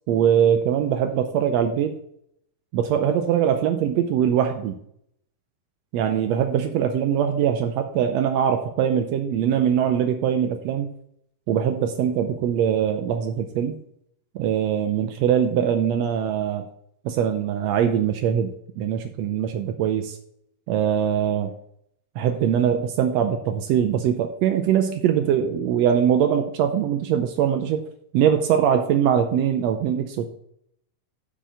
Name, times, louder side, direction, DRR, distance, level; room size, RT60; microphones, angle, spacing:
voice 1, 0.1-2.0 2.7-4.8 5.9-11.0 11.5-13.8 14.3-16.7 17.0-20.2 20.7-21.5 22.2-27.8 28.1-30.3, right 9 dB, 85° right, 6 dB, 1.5 m, -22 dB
7.4 x 5.1 x 6.7 m, 0.72 s
omnidirectional pair, 3.8 m